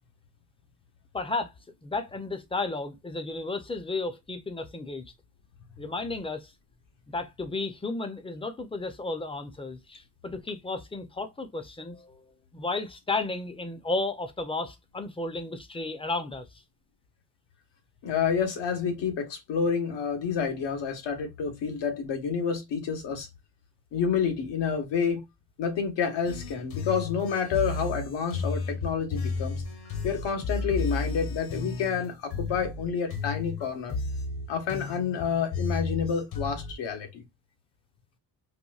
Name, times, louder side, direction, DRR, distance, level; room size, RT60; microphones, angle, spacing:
voice 1, 1.1-1.5 1.8-5.0 5.8-6.5 7.1-12.2 12.5-16.5, left 3 dB, 15° left, 0.4 m, -33 dB
voice 2, 18.0-23.3 23.9-25.2 25.6-29.6 30.0-34.0 34.5-37.2, left 6 dB, 85° left, 1.2 m, -29 dB
sound 1, 26.3-36.7, left 4 dB, 60° left, 1.0 m, -33 dB
4.2 x 2.6 x 2.3 m
cardioid pair, 130°, 42 cm